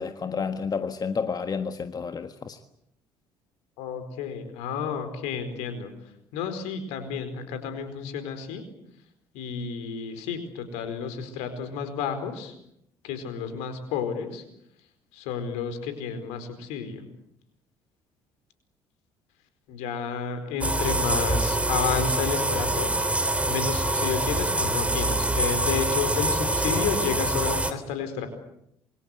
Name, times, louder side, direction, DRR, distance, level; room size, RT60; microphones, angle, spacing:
voice 1, 0.0-2.6, left 5 dB, 35° left, 1.6 m, -30 dB
voice 2, 3.8-8.7 9.3-12.6 13.0-14.4 15.1-17.1 19.7-28.3, left 6 dB, 70° left, 4.6 m, -31 dB
sound 1, 20.6-27.7, right 2 dB, 10° right, 3.2 m, -25 dB
27.5 x 23.5 x 8.1 m
figure-of-eight pair, 50°, 12 cm